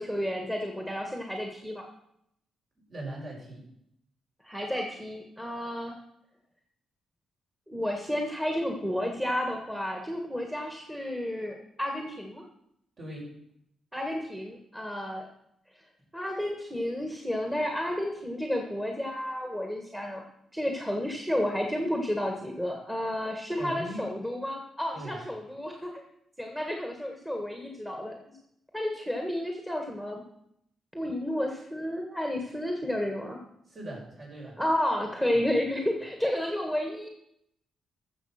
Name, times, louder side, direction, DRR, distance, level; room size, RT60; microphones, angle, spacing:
voice 1, 0.0-1.8 4.4-5.9 7.7-12.4 13.9-15.3 16.1-20.2 20.5-26.0 26.4-28.2 28.7-30.2 30.9-33.4 34.6-37.1, left 1 dB, 5° right, 2 dB, 1.7 m, -31 dB
voice 2, 2.9-3.7 13.0-13.3 23.6-24.0 24.9-25.2 33.7-34.6 35.3-35.4, right 1 dB, 45° right, -2 dB, 5.6 m, -40 dB
14.5 x 7.0 x 5.9 m, 0.77 s
cardioid pair, 105°, 0 cm